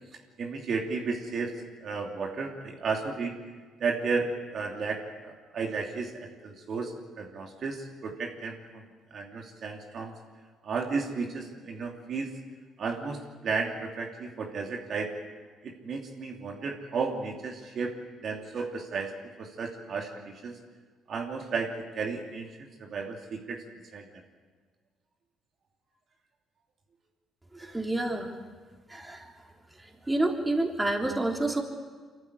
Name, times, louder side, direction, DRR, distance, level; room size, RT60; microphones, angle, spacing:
voice 1, 0.4-3.4 3.8-8.8 9.1-10.1 10.6-12.3 12.8-15.1 15.6-17.9 18.2-19.1 19.4-20.6 21.1-22.5 22.8-23.6 23.9-24.2, right 4 dB, 55° right, 1 dB, 2.8 m, -33 dB
voice 2, 27.5-28.3 28.9-29.3 30.1-31.6, right 2 dB, 15° right, 2 dB, 3.5 m, -28 dB
24.5 x 14.5 x 9.9 m, 1.5 s
supercardioid pair, 65°, 0 cm